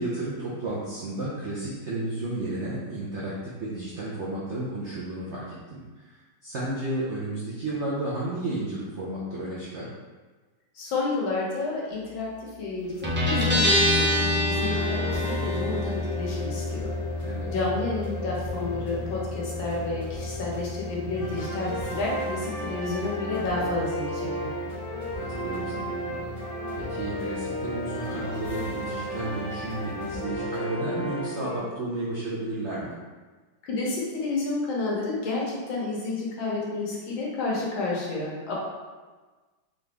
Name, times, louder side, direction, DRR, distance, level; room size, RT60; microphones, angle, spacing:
voice 1, 0.0-6.1 6.4-9.9 17.2-17.5 25.2-26.3 26.7-32.9, right 2 dB, 70° right, -7 dB, 0.6 m, -32 dB
voice 2, 10.8-16.9 17.5-24.5 33.6-38.5, left 3 dB, 80° left, -4 dB, 1.8 m, -30 dB
Guitar, 13.0-30.2, left 1 dB, 15° right, 0.4 m, -30 dB
sound 1, 14.5-31.6, equal, 30° left, 0.7 m, -34 dB
3.9 x 3.5 x 3.4 m, 1.3 s
omnidirectional pair, 2.1 m